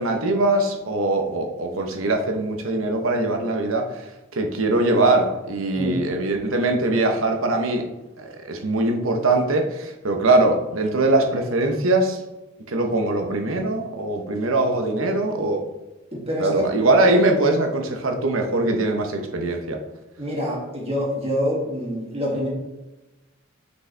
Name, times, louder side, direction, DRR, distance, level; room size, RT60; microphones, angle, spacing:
voice 1, 0.0-4.0 4.3-7.9 8.2-12.2 12.7-15.6 16.4-19.8, right 2 dB, 70° right, 4 dB, 0.9 m, -22 dB
voice 2, 16.1-16.7 20.2-22.5, equal, 30° right, -3 dB, 2.0 m, -26 dB
6.5 x 5.2 x 3.4 m, 1.0 s
head